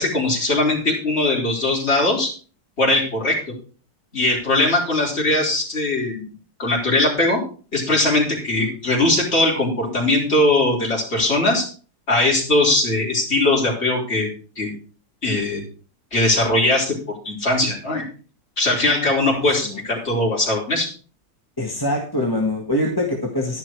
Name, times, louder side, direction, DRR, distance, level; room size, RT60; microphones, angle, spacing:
voice 1, 0.0-2.3 2.8-3.4 4.1-6.2 6.6-7.4 7.7-11.7 12.1-14.3 14.6-14.7 15.2-15.6 16.1-17.0 17.2-18.0 18.6-20.9, left 2 dB, 35° left, -3 dB, 4.6 m, -20 dB
voice 2, 19.3-19.8 21.6-23.6, left 1 dB, 10° left, -1 dB, 1.6 m, -24 dB
11.5 x 11.0 x 4.7 m, 0.38 s
omnidirectional pair, 2.0 m